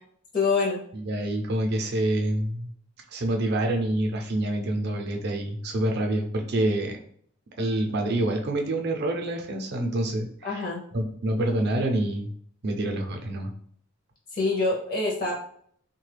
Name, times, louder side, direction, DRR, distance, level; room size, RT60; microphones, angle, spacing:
voice 1, 0.3-0.8 10.4-10.8 14.3-15.4, left 3 dB, 40° left, -2 dB, 0.5 m, -25 dB
voice 2, 0.9-2.7 3.1-7.0 7.6-10.6 10.9-12.3 12.6-13.5, right 1 dB, 50° right, 3 dB, 0.5 m, -27 dB
3.2 x 2.2 x 3.3 m, 0.62 s
head